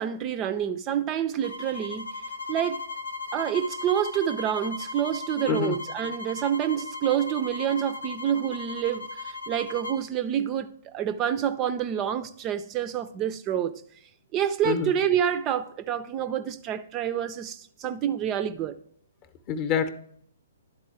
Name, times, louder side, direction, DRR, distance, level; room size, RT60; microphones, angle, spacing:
voice 1, 0.0-2.1 2.5-2.8 3.3-9.1 9.5-10.7 10.9-13.8 14.3-18.8, right 9 dB, 25° right, 0.4 m, -27 dB
sound 1, 1.4-10.0, left 3 dB, 80° left, 0.8 m, -37 dB
voice 2, 5.5-5.8 14.6-14.9 19.5-19.9, left 7 dB, 30° left, 0.7 m, -26 dB
11.0 x 4.0 x 4.6 m
figure-of-eight pair, 120°, 0 cm